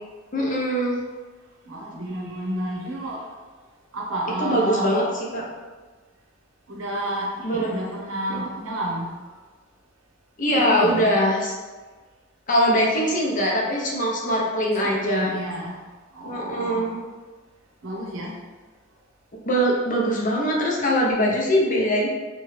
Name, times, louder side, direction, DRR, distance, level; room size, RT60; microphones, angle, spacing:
voice 1, 0.3-1.0 4.4-5.5 7.4-7.8 8.3-8.4 10.4-11.5 12.5-15.4 16.2-17.0 19.5-22.1, equal, 40° left, -2 dB, 0.6 m, -22 dB
voice 2, 1.7-3.2 3.9-4.9 6.7-9.1 10.5-11.1 14.8-15.8 16.1-17.0 17.8-18.4, right 1 dB, 80° right, -2 dB, 0.7 m, -30 dB
3.0 x 2.2 x 3.2 m, 1.3 s
head